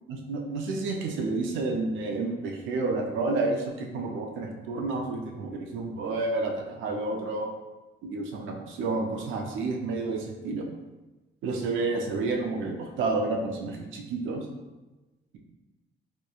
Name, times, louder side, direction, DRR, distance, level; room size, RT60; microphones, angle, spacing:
voice 1, 0.1-7.5 8.0-10.6 11.4-14.4, right 3 dB, 80° right, 2 dB, 0.4 m, -30 dB
2.9 x 2.1 x 2.3 m, 1.1 s
cardioid pair, 90°, 20 cm